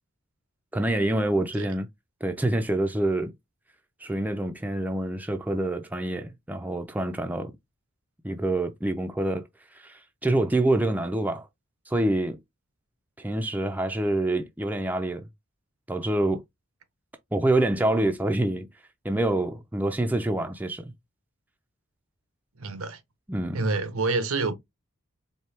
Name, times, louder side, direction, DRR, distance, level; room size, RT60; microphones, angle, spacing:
voice 1, 0.7-1.9 2.2-3.3 4.0-7.5 8.2-9.4 9.7-11.5 11.9-12.4 13.2-15.3 15.9-16.4 17.3-18.7 19.0-20.9 23.3-23.6, right 1 dB, 10° right, 0.4 m, -26 dB
voice 2, 22.6-23.0 23.5-24.5, right 3 dB, 85° right, 0.8 m, -27 dB
4.4 x 2.7 x 3.3 m
head